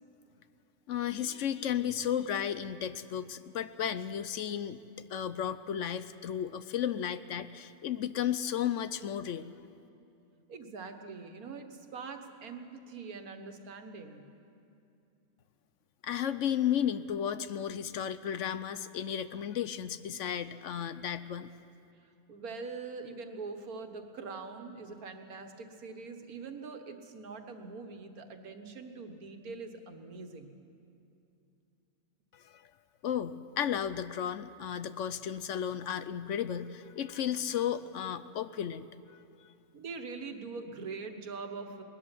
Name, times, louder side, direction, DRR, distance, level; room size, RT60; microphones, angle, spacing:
voice 1, 0.9-4.8 5.1-9.5 16.0-21.5 32.3-32.6 33.0-39.5, left 9 dB, 65° left, 13 dB, 0.9 m, -34 dB
voice 2, 10.5-14.3 22.0-30.6 39.7-41.8, right 4 dB, 85° right, 6 dB, 1.8 m, -43 dB
20.0 x 13.5 x 9.8 m, 2.7 s
omnidirectional pair, 1.5 m